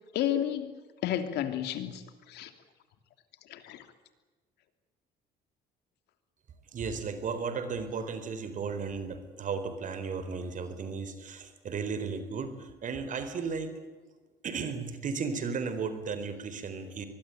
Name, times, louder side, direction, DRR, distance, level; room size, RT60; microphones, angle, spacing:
voice 1, 0.1-0.7 1.0-2.0 2.3-2.5 3.5-3.8, left 11 dB, 80° left, 9 dB, 3.0 m, -31 dB
voice 2, 6.7-13.8 14.4-17.1, right 5 dB, 50° right, 10 dB, 4.1 m, -35 dB
24.5 x 21.0 x 9.2 m, 1.3 s
cardioid pair, 110°, 17 cm